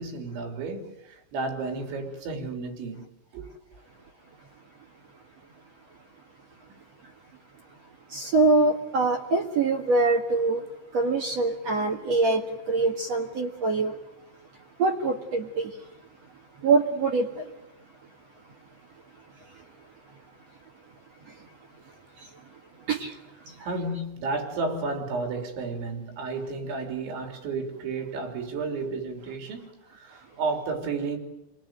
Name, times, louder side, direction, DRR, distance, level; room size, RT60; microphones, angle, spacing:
voice 1, 0.0-3.1 3.3-3.5 23.6-31.2, right 3 dB, 85° right, 5.7 m, -32 dB
voice 2, 8.1-10.7 10.9-14.0 14.8-15.8 16.6-17.5 19.4-19.6 21.2-21.5 21.9-22.6 22.9-23.7, right 3 dB, 50° right, 2.1 m, -25 dB
29.0 x 19.5 x 9.2 m
omnidirectional pair, 5.2 m